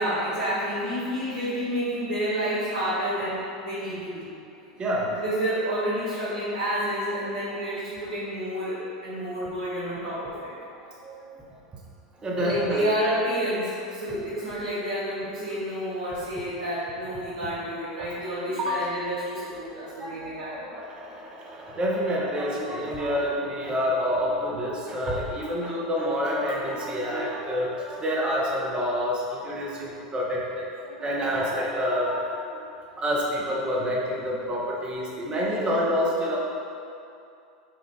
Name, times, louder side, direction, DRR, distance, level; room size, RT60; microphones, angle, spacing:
voice 1, 0.0-4.3 5.1-10.5 12.3-20.6 35.6-35.9, equal, 70° right, -12 dB, 1.1 m, -29 dB
voice 2, 4.8-5.1 7.5-7.6 11.0-11.3 12.2-12.9 18.0-18.1 18.4-18.8 20.0-32.6 33.0-36.4, equal, 25° right, -3 dB, 0.8 m, -28 dB
4.6 x 2.4 x 3.5 m, 2.6 s
hypercardioid pair, 90°, 4 cm